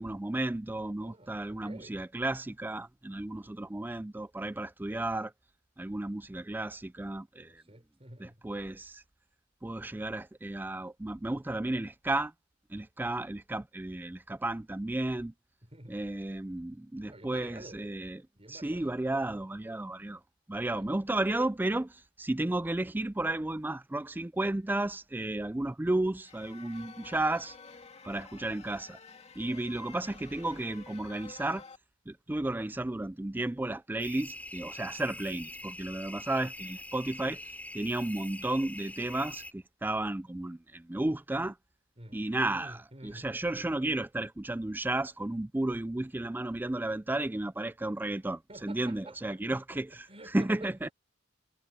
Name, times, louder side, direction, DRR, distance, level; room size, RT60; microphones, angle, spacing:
voice 1, 0.0-5.3 5.8-7.6 8.2-9.0 9.6-12.3 12.7-15.3 15.9-18.2 18.5-20.2 20.5-27.6 28.0-29.0 29.4-31.6 32.1-37.4 37.7-41.6 42.1-50.1 50.3-50.9, right 2 dB, 10° right, 0.4 m, -33 dB
voice 2, 1.0-2.0 7.4-8.4 15.6-16.0 17.1-18.0 18.4-19.3 20.6-20.9 29.3-29.7 42.0-42.3 42.5-43.3 48.5-49.8 50.1-50.7, right 1 dB, 30° right, 5.3 m, -50 dB
sound 1, 26.2-31.8, left 5 dB, 30° left, 2.2 m, -51 dB
sound 2, 34.0-39.5, left 1 dB, 10° left, 3.8 m, -44 dB
head